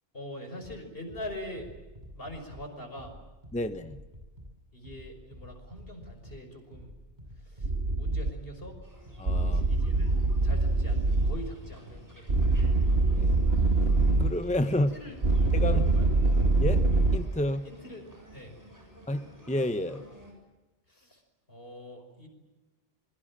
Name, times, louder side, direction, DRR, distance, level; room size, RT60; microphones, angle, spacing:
voice 1, 0.1-1.7 2.1-3.1 4.7-7.0 7.4-8.8 9.4-12.7 14.7-15.4 15.7-16.1 17.6-18.1 18.3-18.6 20.9-21.2 21.5-22.3, left 1 dB, 65° left, 5 dB, 6.0 m, -43 dB
sound 1, 0.6-15.6, equal, 45° right, 8.2 m, -49 dB
voice 2, 3.5-4.0 9.2-9.7 13.0-13.5 14.2-14.9 15.5-15.9 16.6-16.8 17.1-17.6 19.1-19.2 19.5-20.0, left 1 dB, 5° left, 9 dB, 1.0 m, -30 dB
sound 2, 7.6-8.3 9.3-11.4 12.3-14.3 15.2-17.2, right 2 dB, 70° right, 2.0 m, -24 dB
sound 3, 8.8-20.3, left 1 dB, 15° right, 7.5 m, -52 dB
26.5 x 23.0 x 7.6 m, 1.1 s
omnidirectional pair, 1.1 m